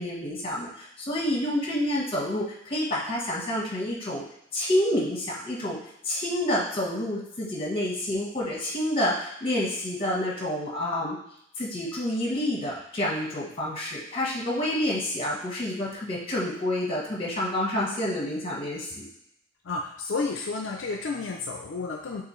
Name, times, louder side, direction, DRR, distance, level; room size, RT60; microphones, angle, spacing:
voice 1, 0.0-4.2 4.5-5.8 6.0-11.2 11.6-19.1, left 1 dB, 25° left, -3 dB, 1.1 m, -28 dB
voice 2, 19.6-22.2, left 3 dB, 65° left, 2 dB, 0.4 m, -31 dB
6.3 x 2.6 x 3.1 m, 0.76 s
head